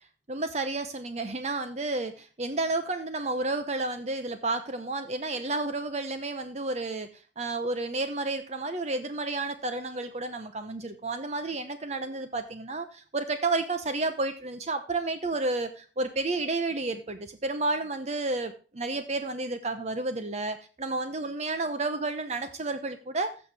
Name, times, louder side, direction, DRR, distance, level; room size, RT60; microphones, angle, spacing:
voice 1, 0.3-7.1 7.4-23.3, right 2 dB, 35° right, 9 dB, 0.8 m, -31 dB
15.5 x 6.3 x 3.3 m, 0.36 s
head